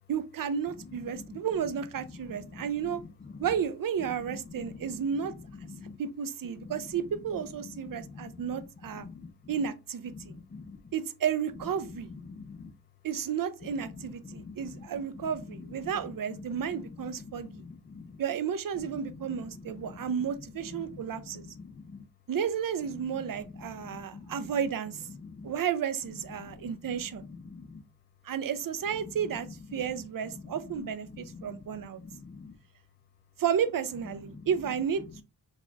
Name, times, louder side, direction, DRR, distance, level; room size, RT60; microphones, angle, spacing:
voice 1, 0.1-3.0 3.4-5.3 6.0-9.1 9.5-10.3 10.9-12.1 13.0-17.6 18.2-21.5 22.3-25.1 25.4-27.2 28.2-32.0 33.4-35.2, right 8 dB, 55° right, 0.5 m, -32 dB
voice 2, 4.3-4.9 5.7-6.0 6.6-6.7 7.9-8.7 8.9-9.3 10.1-10.8 12.1-12.7 14.2-14.9 15.2-15.7 15.9-16.0 16.5-17.0 17.3-18.1 19.3-19.4 19.7-19.9 20.7-22.0 23.1-23.2 23.5-24.3 25.2-25.5 26.4-27.8 29.7-29.8 30.3-30.4 31.2-32.6 34.3-34.5, left 4 dB, 30° left, 0.3 m, -46 dB
4.0 x 2.8 x 2.3 m
wide cardioid pair, 85°, 40 cm